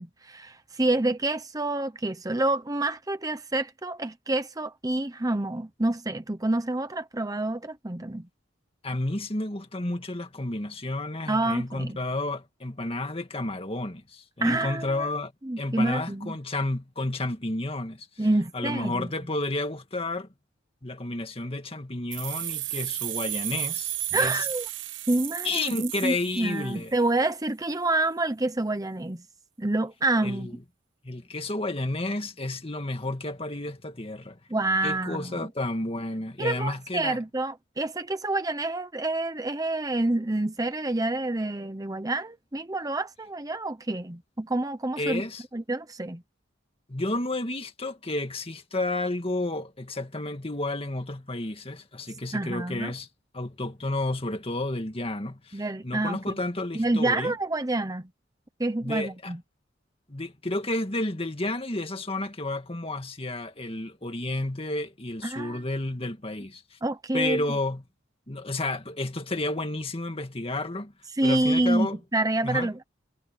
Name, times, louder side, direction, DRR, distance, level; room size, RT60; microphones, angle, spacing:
voice 1, 0.0-8.3 11.3-12.0 14.4-15.1 15.4-16.4 18.2-19.1 24.1-24.7 25.1-29.2 29.6-30.5 34.5-35.4 36.4-45.2 45.5-46.2 52.3-52.9 55.5-56.4 56.7-58.1 58.6-59.4 65.2-65.6 66.8-67.4 71.2-72.8, right 2 dB, 20° right, 1.0 m, -28 dB
voice 2, 8.8-15.3 15.6-18.3 18.5-20.3 20.8-24.5 25.4-26.9 30.2-30.5 31.0-34.4 34.8-37.2 45.0-45.4 46.9-53.1 53.3-57.3 58.8-59.3 60.1-66.8 67.1-67.8 68.3-70.9 71.2-72.0 72.4-72.7, left 2 dB, 30° left, 2.1 m, -31 dB
sound 1, 22.1-26.9, right 15 dB, 70° right, 1.1 m, -33 dB
head